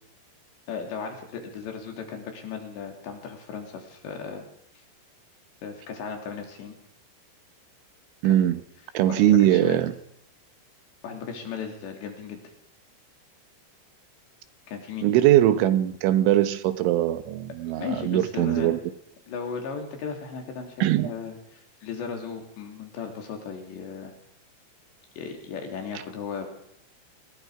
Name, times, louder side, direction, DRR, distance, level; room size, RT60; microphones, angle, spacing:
voice 1, 0.7-4.5 5.6-6.8 8.3-8.6 9.1-9.8 11.0-12.4 14.7-15.1 17.8-18.7 19.3-24.1 25.2-26.5, left 6 dB, 70° left, 3 dB, 5.4 m, -36 dB
voice 2, 8.2-8.6 9.0-9.9 15.0-18.8 20.8-21.1, right 12 dB, 85° right, 11 dB, 3.6 m, -21 dB
26.5 x 20.5 x 5.0 m, 0.75 s
omnidirectional pair, 5.3 m